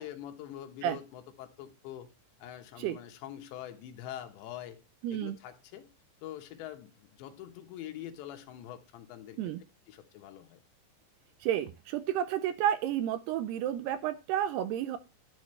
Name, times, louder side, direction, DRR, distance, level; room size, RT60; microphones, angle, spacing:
voice 1, 0.0-2.1 2.4-4.8 5.1-5.9 6.2-9.4 9.9-10.6, left 11 dB, 85° left, 7 dB, 3.4 m, -44 dB
voice 2, 5.0-5.4 9.4-9.6 11.4-15.0, right 11 dB, 80° right, 12 dB, 2.5 m, -31 dB
12.5 x 7.5 x 3.2 m, 0.27 s
omnidirectional pair, 5.1 m